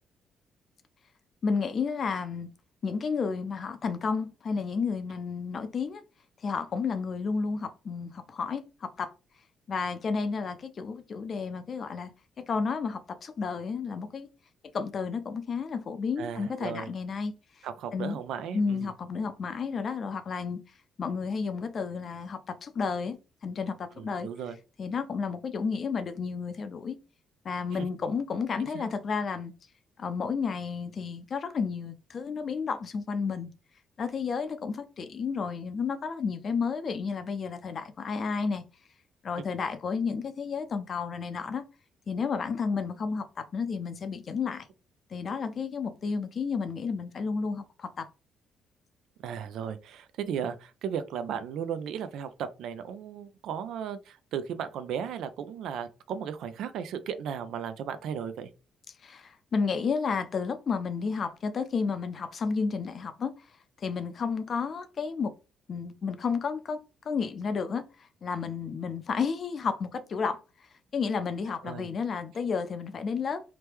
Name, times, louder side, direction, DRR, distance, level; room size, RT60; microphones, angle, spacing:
voice 1, 1.4-2.5 2.8-6.0 6.4-9.1 9.7-12.1 12.4-14.3 14.7-17.3 17.9-18.2 18.5-20.6 21.0-23.2 23.4-24.3 24.8-27.0 27.4-29.5 30.0-33.5 34.0-38.6 39.2-41.6 42.1-44.7 45.1-48.1 59.0-63.3 63.8-65.3 65.7-66.8 67.1-67.8 68.2-70.4 70.9-73.4, left 5 dB, 45° left, 0.5 m, -31 dB
voice 2, 16.2-16.9 17.6-18.9 24.0-24.6 27.7-27.9 28.6-28.9 49.2-58.5 71.6-71.9, right 8 dB, 80° right, 0.4 m, -36 dB
2.9 x 2.2 x 3.3 m
cardioid pair, 105°, 0 cm